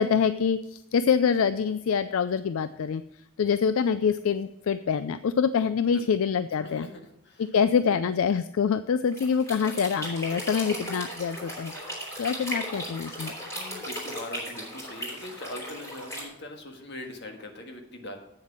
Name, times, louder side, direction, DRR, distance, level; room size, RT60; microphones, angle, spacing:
voice 1, 0.0-3.0 3.4-6.9 7.4-11.7 12.2-13.3, left 6 dB, 75° left, 13 dB, 0.4 m, -25 dB
voice 2, 6.6-7.5 7.8-8.0 13.5-18.2, left 1 dB, 55° left, 3 dB, 1.6 m, -41 dB
sound 1, 9.1-16.2, equal, 15° left, 4.2 m, -36 dB
8.6 x 7.3 x 6.1 m, 0.81 s
head